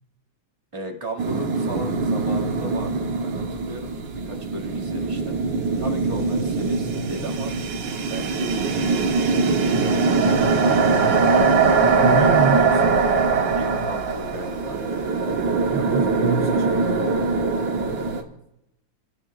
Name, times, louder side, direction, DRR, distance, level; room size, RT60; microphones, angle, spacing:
voice 1, 0.7-5.4 5.8-7.5 8.1-9.1 9.4-9.8 13.6-14.8 18.2-18.4, right 1 dB, 15° right, 0 dB, 2.1 m, -36 dB
sound 1, 1.2-18.2, right 4 dB, 85° right, 2.1 m, -22 dB
voice 2, 11.8-13.1 15.4-17.1, right 5 dB, 65° right, 3 dB, 1.5 m, -28 dB
29.0 x 16.0 x 2.4 m, 0.86 s
omnidirectional pair, 2.0 m